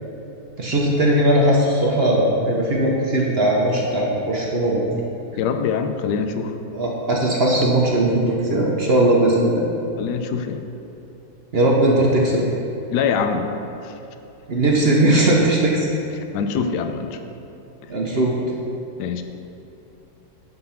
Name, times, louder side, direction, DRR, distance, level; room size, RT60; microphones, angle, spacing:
voice 1, 0.6-4.8 6.7-9.6 11.5-12.4 14.5-15.9 17.9-18.4, right 1 dB, 45° right, -3 dB, 0.8 m, -18 dB
voice 2, 5.4-6.6 10.0-10.7 12.9-13.5 13.8-14.0 16.2-17.2 19.0-19.2, left 6 dB, 70° left, 7 dB, 1.1 m, -24 dB
11.0 x 3.8 x 5.7 m, 2.8 s
omnidirectional pair, 2.1 m